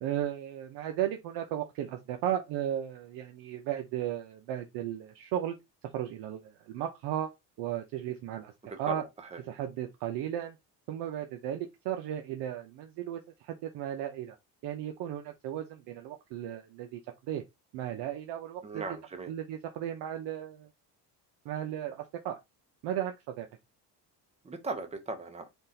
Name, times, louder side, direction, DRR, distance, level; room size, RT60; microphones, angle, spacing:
voice 1, 0.0-5.6 5.9-7.3 7.6-8.5 8.8-9.0 9.5-10.5 10.9-14.4 14.6-17.4 17.7-18.8 19.3-20.7 21.5-22.4 22.8-23.5, right 11 dB, 70° right, 0.6 m, -35 dB
voice 2, 8.6-9.4 18.6-19.3 24.4-25.5, right 3 dB, 15° right, 0.6 m, -38 dB
3.5 x 2.4 x 2.7 m
cardioid pair, 115°, 42 cm